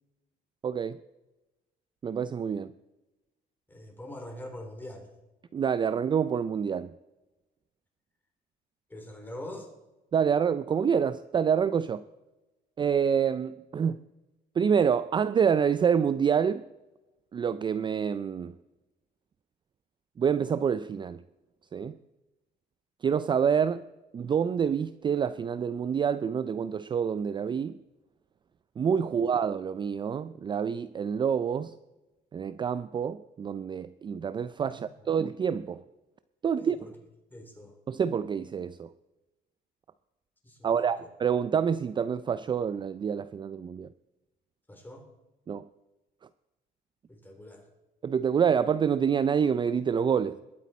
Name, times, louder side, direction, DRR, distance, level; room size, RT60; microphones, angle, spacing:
voice 1, 0.6-1.0 2.0-2.7 5.5-6.9 10.1-12.0 12.8-14.0 14.6-16.7 17.3-18.5 20.2-21.2 21.7-22.0 23.0-23.9 24.1-27.8 28.8-31.7 32.3-35.8 36.4-36.8 37.9-38.9 40.6-43.9 45.5-45.7 48.0-50.4, right 7 dB, 30° right, 0.4 m, -27 dB
voice 2, 3.7-5.1 8.9-9.7 29.1-29.2 34.6-35.1 36.6-36.9 37.3-37.8 40.4-41.1 44.7-45.1 47.1-47.7, left 1 dB, 10° left, 3.5 m, -44 dB
21.0 x 8.4 x 4.2 m
cardioid pair, 110°, 17 cm